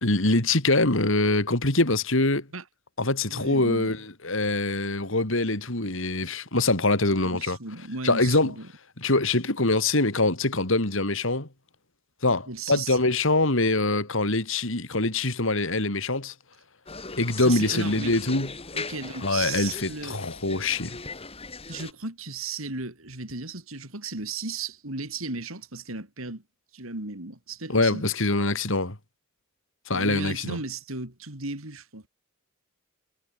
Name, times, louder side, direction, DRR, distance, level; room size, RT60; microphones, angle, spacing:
voice 1, 0.0-2.5 3.0-7.6 8.0-8.5 9.0-11.5 12.2-16.3 17.1-18.5 19.2-21.0 27.7-29.0 29.9-30.6, left 2 dB, 70° left, 3.6 m, -24 dB
voice 2, 3.3-3.9 7.1-8.7 12.5-13.0 17.4-18.1 18.7-20.2 21.7-26.4 26.7-28.0 29.9-32.1, right 3 dB, 85° right, 4.4 m, -35 dB
sound 1, 16.9-21.9, left 4 dB, 30° left, 3.2 m, -39 dB
head